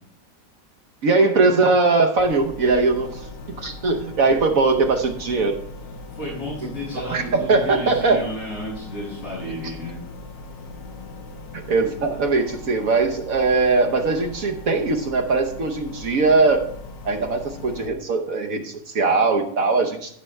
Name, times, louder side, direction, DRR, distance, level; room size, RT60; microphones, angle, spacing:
voice 1, 1.0-3.3 3.6-5.6 6.9-8.2 11.5-16.7 17.0-20.2, right 3 dB, 55° right, 5 dB, 1.1 m, -20 dB
sound 1, 2.2-17.9, left 3 dB, 80° left, 1.7 m, -39 dB
voice 2, 6.1-10.0, equal, 45° left, -7 dB, 5.3 m, -32 dB
15.5 x 5.9 x 3.3 m, 0.66 s
omnidirectional pair, 2.0 m